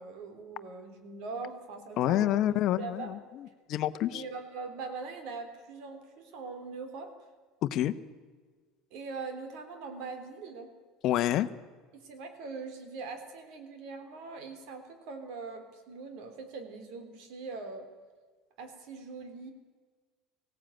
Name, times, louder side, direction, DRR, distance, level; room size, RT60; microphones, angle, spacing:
voice 1, 0.0-3.1 4.1-7.1 8.9-10.7 11.9-17.9 18.6-19.5, right 4 dB, 70° right, 8 dB, 3.4 m, -42 dB
voice 2, 2.0-4.2 7.6-7.9 11.0-11.5, left 13 dB, 55° left, 12 dB, 0.9 m, -28 dB
18.5 x 16.5 x 9.1 m, 1.5 s
supercardioid pair, 125°, 0 cm